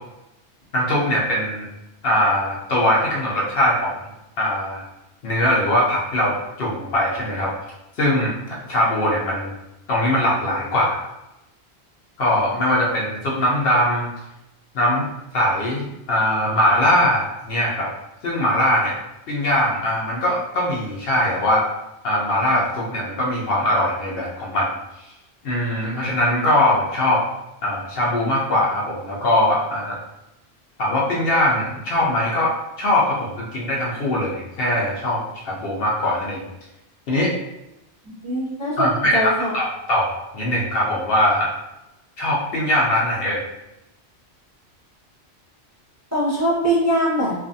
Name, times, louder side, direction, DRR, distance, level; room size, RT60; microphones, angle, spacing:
voice 1, 0.7-1.7 2.0-4.0 4.4-4.8 5.2-7.5 8.0-9.5 9.9-11.0 12.2-14.1 14.7-15.1 15.3-17.9 18.2-18.9 19.3-21.7 22.0-24.7 25.4-27.2 27.6-30.0 30.8-36.5 37.1-37.3 38.8-41.5 42.2-43.4, left 1 dB, 65° left, -4 dB, 0.8 m, -21 dB
voice 2, 38.0-39.5 46.1-47.3, equal, 15° right, -10 dB, 0.8 m, -22 dB
2.5 x 2.4 x 2.6 m, 0.92 s
omnidirectional pair, 1.1 m